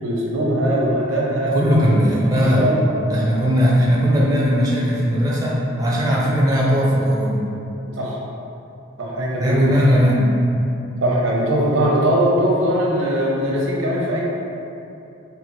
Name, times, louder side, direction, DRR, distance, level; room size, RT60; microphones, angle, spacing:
voice 1, 0.0-2.9 7.9-8.2 9.0-9.7 11.0-14.2, right 1 dB, 80° right, -4 dB, 0.6 m, -21 dB
voice 2, 1.5-2.7 3.1-7.4 9.4-10.3, equal, 20° right, -5 dB, 0.4 m, -18 dB
3.9 x 2.1 x 2.9 m, 2.7 s
head